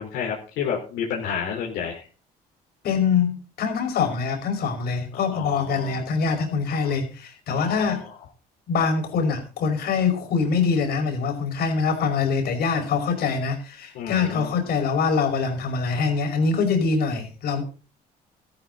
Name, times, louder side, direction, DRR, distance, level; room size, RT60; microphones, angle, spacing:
voice 1, 0.0-2.0 5.3-6.0 6.8-6.9 7.5-8.0 13.9-14.5, left 7 dB, 90° left, -2 dB, 4.3 m, -30 dB
voice 2, 2.8-8.0 8.7-17.6, left 5 dB, 65° left, 4 dB, 5.6 m, -24 dB
14.0 x 13.5 x 4.1 m, 0.36 s
cardioid pair, 110°, 17 cm